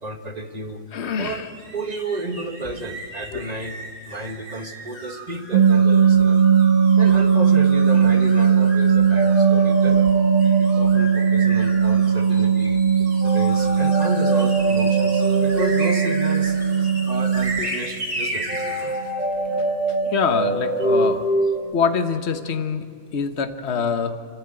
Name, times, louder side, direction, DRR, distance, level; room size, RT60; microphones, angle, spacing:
voice 1, 0.0-0.8 1.2-1.4 1.7-3.8 4.1-6.5 7.0-10.1 10.4-12.8 13.2-16.6 17.1-18.9, right 2 dB, 30° right, 6 dB, 1.3 m, -32 dB
voice 2, 0.9-1.5 3.3-3.5 15.6-15.7 18.2-18.3 18.8-19.0 19.5-19.7 20.0-21.3 21.7-22.8 23.1-24.1, left 6 dB, 50° left, 8 dB, 1.3 m, -25 dB
sound 1, 1.3-18.9, right 1 dB, 65° right, 4.9 m, -36 dB
sound 2, 5.5-17.6 19.5-19.7 19.9-20.1 20.5-20.6 20.9-21.2, right 7 dB, 45° right, 1.3 m, -18 dB
sound 3, 9.2-11.8 13.2-17.1 18.5-21.6, right 1 dB, 5° right, 1.3 m, -25 dB
26.0 x 14.5 x 8.9 m, 2.1 s
omnidirectional pair, 1.6 m